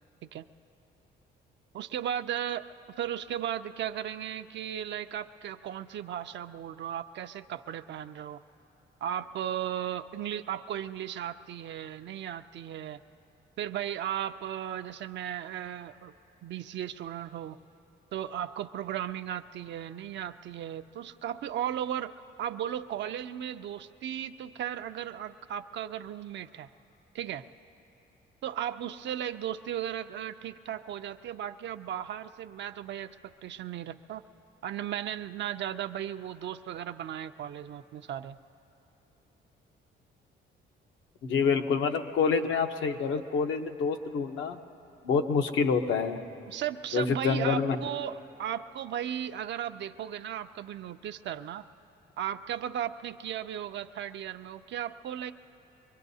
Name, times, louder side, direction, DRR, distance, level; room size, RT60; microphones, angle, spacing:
voice 1, 1.7-8.4 9.0-13.0 13.6-16.1 16.4-17.6 18.1-26.7 27.1-27.5 28.4-34.2 34.6-38.4 46.4-51.7 52.2-55.3, right 10 dB, 65° right, 9 dB, 0.5 m, -36 dB
voice 2, 41.2-44.6 45.0-46.2 46.9-47.8, left 5 dB, 75° left, 5 dB, 0.9 m, -27 dB
24.5 x 21.5 x 2.7 m, 2.9 s
cardioid pair, 90°, 20 cm